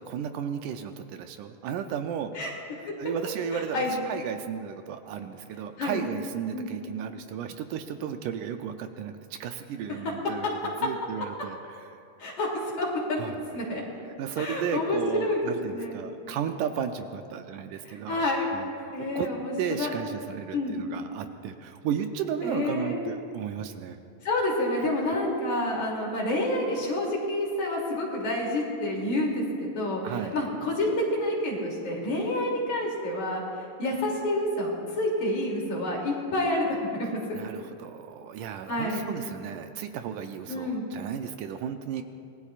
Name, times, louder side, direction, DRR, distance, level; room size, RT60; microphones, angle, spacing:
voice 1, 0.0-2.3 3.0-12.0 13.2-13.4 14.2-18.2 18.5-19.3 19.6-24.0 25.1-25.2 30.0-30.4 37.3-42.0, right 8 dB, 80° right, 7 dB, 2.1 m, -34 dB
voice 2, 3.5-3.9 5.8-6.0 6.5-6.7 9.9-10.1 10.4-10.5 12.2-13.2 13.5-13.8 14.4-15.4 15.7-16.0 17.9-18.5 18.9-19.9 20.5-20.7 22.4-23.0 24.2-30.0 30.3-37.1 38.7-39.1 40.5-40.9, left 1 dB, 60° left, -3 dB, 4.2 m, -28 dB
25.5 x 20.0 x 2.5 m, 2.4 s
omnidirectional pair, 3.8 m